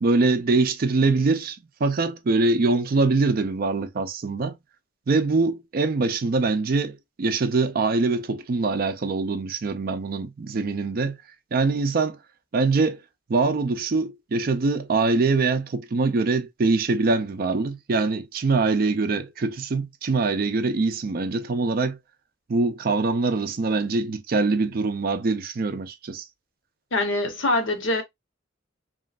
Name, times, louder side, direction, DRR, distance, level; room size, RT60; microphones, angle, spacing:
voice 1, 0.0-4.6 5.1-11.2 11.5-12.2 12.5-13.0 13.3-22.0 22.5-26.2, right 3 dB, 50° right, 0.4 m, -23 dB
voice 2, 26.9-28.0, left 2 dB, 75° left, 0.9 m, -24 dB
3.0 x 2.5 x 2.4 m
head